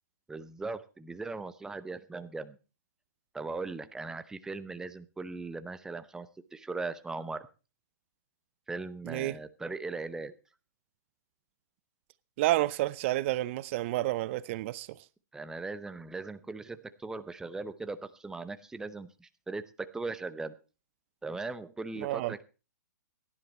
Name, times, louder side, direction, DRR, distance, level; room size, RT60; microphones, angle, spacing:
voice 1, 0.3-2.6 3.3-7.4 8.7-10.4 15.3-20.5 21.2-22.4, right 3 dB, 5° right, 0.8 m, -39 dB
voice 2, 12.4-15.0 22.0-22.3, right 16 dB, 45° right, 0.6 m, -30 dB
16.5 x 11.0 x 4.3 m
hypercardioid pair, 135°, 10 cm